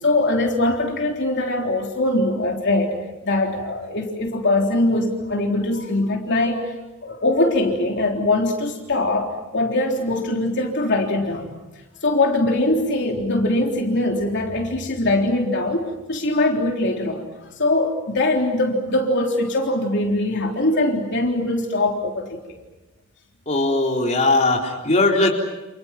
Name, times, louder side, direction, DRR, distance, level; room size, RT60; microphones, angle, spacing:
voice 1, 0.0-2.9 3.2-6.7 7.0-11.5 12.0-17.2 17.6-22.4, left 2 dB, 55° left, 1 dB, 3.6 m, -22 dB
voice 2, 23.5-25.3, left 2 dB, 30° left, 0 dB, 4.0 m, -19 dB
30.0 x 29.5 x 6.0 m, 1.1 s
head